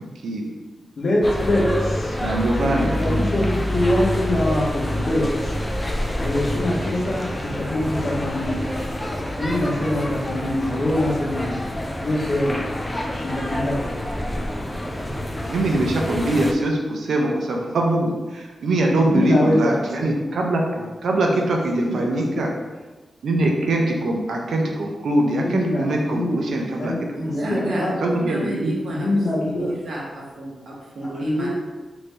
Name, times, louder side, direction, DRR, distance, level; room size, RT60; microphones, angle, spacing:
voice 1, 1.0-2.2 2.6-5.6 6.2-8.8 9.4-11.6 12.0-12.8 13.1-13.8 19.0-20.1 20.8-20.9 21.2-21.5 21.8-22.4 25.3-28.0 28.9-29.7 31.2-31.5, left 1 dB, 50° left, -3 dB, 0.7 m, -24 dB
sound 1, 1.2-16.5, left 1 dB, 15° left, 0.3 m, -27 dB
voice 2, 2.2-3.5 15.5-20.6 21.0-22.5 23.2-26.9 27.4-27.6 28.0-28.7, right 1 dB, 80° right, 0 dB, 0.5 m, -22 dB
voice 3, 27.1-29.1 29.4-31.5, right 1 dB, 65° right, -5 dB, 1.0 m, -31 dB
3.1 x 2.6 x 3.3 m, 1.2 s
wide cardioid pair, 140°, 0 cm